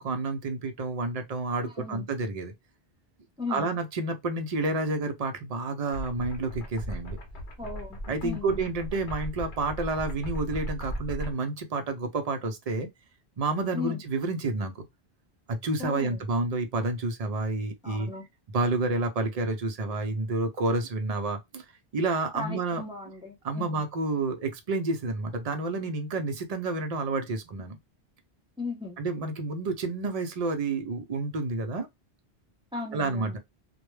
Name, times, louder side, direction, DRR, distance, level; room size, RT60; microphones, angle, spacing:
voice 1, 0.0-2.5 3.5-7.2 8.1-12.9 13.4-14.8 15.5-18.1 18.5-21.6 21.9-22.8 23.4-27.8 29.0-31.9 32.9-33.4, right 3 dB, 50° right, 0.5 m, -29 dB
voice 2, 1.6-2.1 3.4-3.7 7.6-8.6 13.7-14.0 15.8-16.2 17.8-18.3 22.3-23.8 28.6-29.0 32.7-33.4, left 3 dB, 5° right, 0.6 m, -37 dB
sound 1, 5.9-11.3, equal, 55° left, 0.8 m, -37 dB
2.1 x 2.1 x 3.1 m
omnidirectional pair, 1.1 m